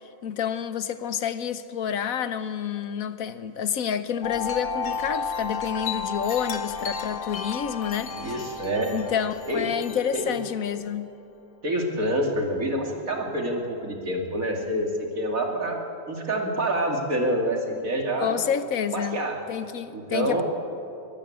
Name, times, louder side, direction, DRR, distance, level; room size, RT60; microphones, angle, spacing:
voice 1, 0.2-8.1 8.9-11.1 18.2-19.2 19.5-20.4, left 8 dB, 75° left, 1.3 m, -29 dB
Wind chime, 4.2-10.7, left 5 dB, 60° left, 1.4 m, -33 dB
voice 2, 8.1-8.9 9.5-9.7 10.1-10.3 11.6-14.9 15.1-18.4 18.9-19.4 19.9-20.4, right 1 dB, 75° right, 3.1 m, -27 dB
23.0 x 15.0 x 8.7 m
omnidirectional pair, 1.5 m